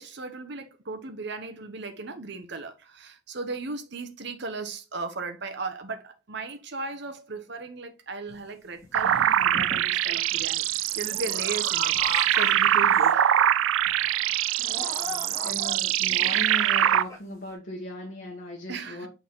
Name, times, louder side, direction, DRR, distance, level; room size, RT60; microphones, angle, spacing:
voice 1, 0.0-10.7 11.0-12.0 12.3-13.2 18.7-19.1, right 3 dB, 60° right, 1.0 m, -36 dB
sound 1, 8.3-8.4 8.8-10.0 10.3-12.5 12.8-13.4 13.9-14.0 14.6-15.7 16.1-17.2, equal, 15° left, 2.3 m, -37 dB
sound 2, 8.9-17.0, right 11 dB, 75° right, 0.3 m, -23 dB
voice 2, 14.8-19.1, left 1 dB, 45° left, 1.4 m, -38 dB
6.6 x 4.0 x 3.8 m
head